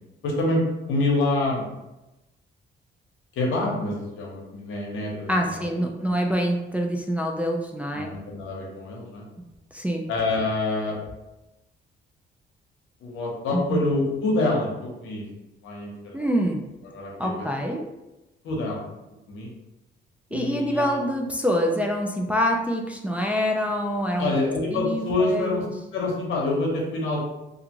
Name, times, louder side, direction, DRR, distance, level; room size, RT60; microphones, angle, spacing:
voice 1, 0.2-1.6 3.3-5.9 7.9-9.2 10.1-11.0 13.0-15.3 15.6-16.3 16.8-17.5 18.4-18.9 19.3-19.5 20.3-21.0 24.2-25.6 25.9-27.3, left 2 dB, 80° left, -2 dB, 0.9 m, -26 dB
voice 2, 5.3-8.1 9.7-10.1 13.5-13.8 16.1-16.6 17.2-17.8 20.3-24.3 24.7-25.7, equal, 5° right, 0 dB, 0.3 m, -25 dB
2.4 x 2.4 x 2.9 m, 0.97 s
cardioid pair, 90°, 20 cm